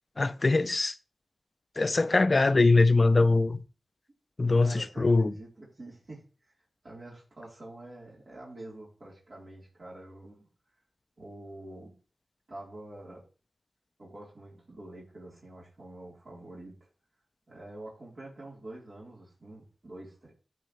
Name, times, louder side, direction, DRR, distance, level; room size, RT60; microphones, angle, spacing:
voice 1, 0.2-0.9 1.8-3.6 4.4-5.3, left 3 dB, 50° left, 0.6 m, -22 dB
voice 2, 4.6-6.5 6.8-10.5 11.2-11.9 12.5-13.3 14.0-16.8 17.5-20.3, right 1 dB, 65° right, 4.0 m, -46 dB
12.5 x 5.1 x 3.3 m
cardioid pair, 45°, 0 cm